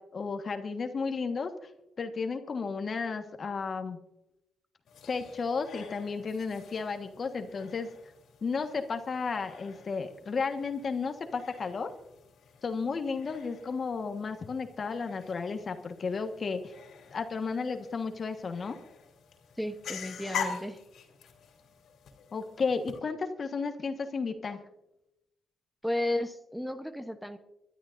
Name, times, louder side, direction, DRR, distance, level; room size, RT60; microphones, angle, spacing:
voice 1, 0.0-1.5 2.0-4.0 5.1-7.9 8.4-11.9 12.6-16.7 17.1-18.8 22.3-24.6, left 4 dB, 45° left, 7 dB, 1.4 m, -33 dB
sound 1, 4.9-23.0, left 7 dB, 75° left, 2.9 m, -45 dB
voice 2, 19.6-20.8 25.8-27.4, left 1 dB, ahead, 8 dB, 0.9 m, -33 dB
25.0 x 12.0 x 2.6 m, 0.89 s
cardioid pair, 85°, 0 cm